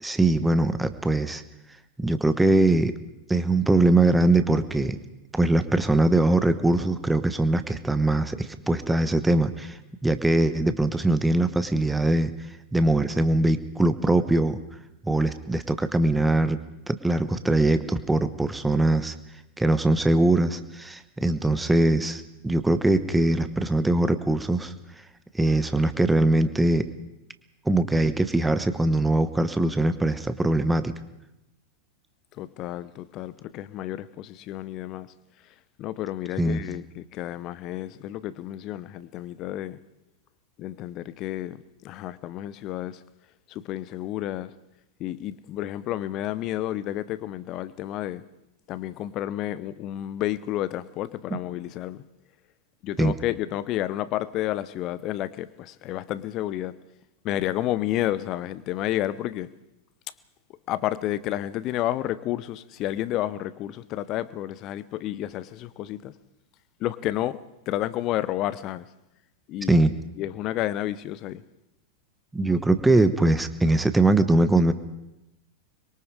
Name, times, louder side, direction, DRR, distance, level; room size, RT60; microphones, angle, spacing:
voice 1, 0.0-1.4 2.0-2.9 3.3-5.0 5.3-12.3 12.7-14.6 15.0-16.6 16.9-19.1 19.6-24.7 25.3-26.9 27.6-30.9 36.4-36.6 53.0-53.1 69.7-69.9 72.3-74.7, right 2 dB, 5° right, 1.1 m, -22 dB
voice 2, 32.4-35.1 35.8-39.8 40.6-43.0 43.5-44.5 45.0-48.2 48.7-52.0 52.8-56.8 57.2-59.5 60.7-66.1 66.8-68.9 69.5-69.8 70.2-71.4, left 13 dB, 35° left, 0.8 m, -31 dB
24.5 x 22.5 x 4.9 m
figure-of-eight pair, 90°, 0 cm